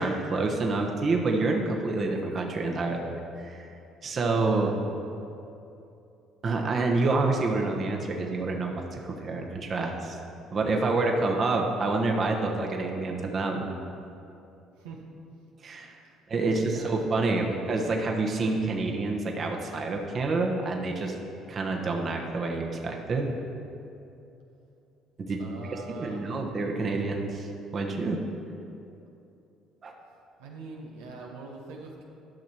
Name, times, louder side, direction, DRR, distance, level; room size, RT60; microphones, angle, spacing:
voice 1, 0.0-3.7 4.0-4.8 6.4-10.2 10.5-13.7 15.6-16.0 16.3-21.1 21.5-23.3 25.2-25.4 26.0-28.2 29.8-29.9, right 3 dB, 45° right, 1 dB, 1.2 m, -28 dB
voice 2, 16.4-16.9 17.2-17.6 25.4-26.3 30.4-32.0, right 3 dB, 90° right, -1 dB, 1.1 m, -43 dB
12.0 x 6.0 x 4.5 m, 2.8 s
supercardioid pair, 65°, 0 cm